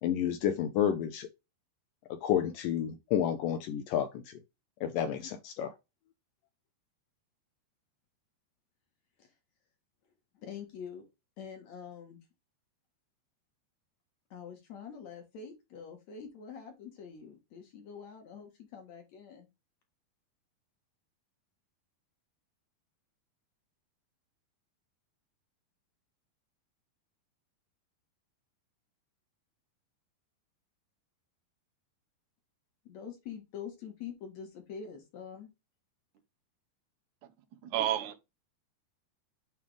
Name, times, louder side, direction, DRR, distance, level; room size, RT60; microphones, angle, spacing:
voice 1, 0.0-1.3 2.1-4.4 4.8-5.7, left 9 dB, 80° left, 2.0 m, -30 dB
voice 2, 10.3-11.0 11.4-12.2 14.3-19.5 32.9-35.5, left 7 dB, 55° left, 2.3 m, -45 dB
voice 3, 37.6-38.2, right 12 dB, 75° right, 1.8 m, -31 dB
9.3 x 3.4 x 3.4 m
omnidirectional pair, 4.6 m